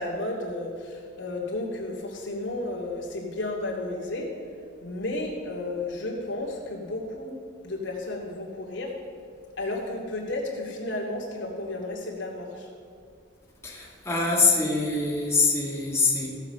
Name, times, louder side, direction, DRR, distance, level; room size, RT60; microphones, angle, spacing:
voice 1, 0.0-4.3 4.8-7.4 7.6-8.9 9.6-12.7, left 2 dB, 90° left, -2 dB, 2.5 m, -32 dB
voice 2, 13.6-16.3, left 3 dB, 15° left, -3 dB, 1.8 m, -24 dB
15.5 x 7.4 x 5.7 m, 2.2 s
head